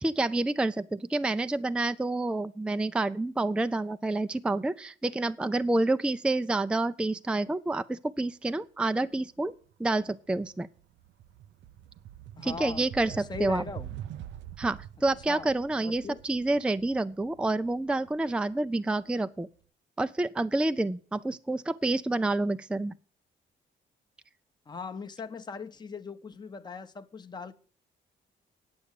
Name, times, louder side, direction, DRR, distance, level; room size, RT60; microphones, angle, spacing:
voice 1, 0.0-9.5 9.8-10.7 12.4-13.6 14.6-19.5 20.0-22.9, right 2 dB, 5° right, 0.4 m, -28 dB
sound 1, 9.5-9.7 10.1-18.9, right 11 dB, 70° right, 0.5 m, -45 dB
voice 2, 12.4-13.9 15.3-15.5 15.8-16.2 24.7-27.5, left 5 dB, 20° left, 0.8 m, -40 dB
9.4 x 7.0 x 8.3 m
cardioid pair, 90°, 20 cm